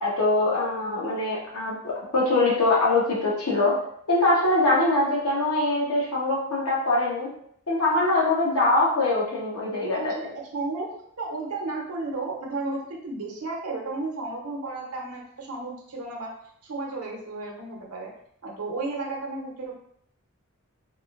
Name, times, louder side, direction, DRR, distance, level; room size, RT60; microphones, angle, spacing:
voice 1, 0.0-3.7 4.1-7.3 7.7-10.1, left 2 dB, 75° left, -5 dB, 1.1 m, -23 dB
voice 2, 9.9-10.2 10.5-10.9 11.2-16.3 16.6-18.1 18.4-19.7, right 3 dB, 90° right, -1 dB, 0.8 m, -33 dB
3.5 x 2.5 x 2.4 m, 0.68 s
head